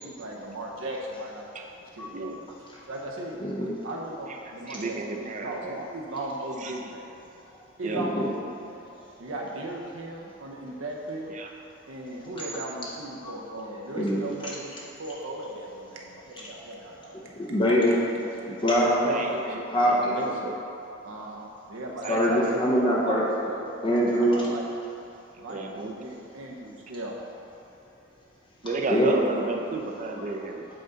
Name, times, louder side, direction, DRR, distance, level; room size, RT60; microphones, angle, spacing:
voice 1, 0.0-1.5 1.8-2.3 2.9-3.4 3.8-7.1 7.8-8.9 9.2-11.4 11.9-18.4 19.0-19.4 20.1-20.3 21.0-22.8 23.0-23.7 24.2-24.6 25.4-27.1 28.9-29.4, right 1 dB, 75° right, -1 dB, 0.7 m, -37 dB
voice 2, 2.0-2.4 4.5-5.9 6.6-6.7 7.8-8.0 11.3-11.5 19.1-19.6 19.9-20.5 22.0-22.6 25.5-26.0 28.6-30.7, right 3 dB, 40° right, 3 dB, 0.5 m, -33 dB
voice 3, 3.4-3.7 7.9-8.3 14.0-14.2 17.5-18.0 18.6-19.1 19.7-20.2 22.1-23.2 23.8-24.5 28.9-29.1, equal, 25° left, -5 dB, 0.6 m, -23 dB
7.7 x 3.9 x 3.9 m, 2.9 s
head